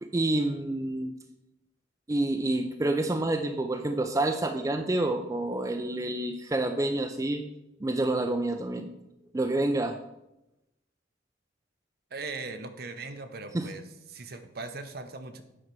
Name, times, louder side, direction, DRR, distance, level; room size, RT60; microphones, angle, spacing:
voice 1, 0.0-1.1 2.1-7.4 7.8-8.9 9.3-10.0 13.5-13.7, right 2 dB, 20° right, 6 dB, 0.4 m, -28 dB
voice 2, 12.1-15.4, right 3 dB, 55° right, 8 dB, 0.8 m, -39 dB
8.7 x 4.3 x 5.3 m, 0.92 s
head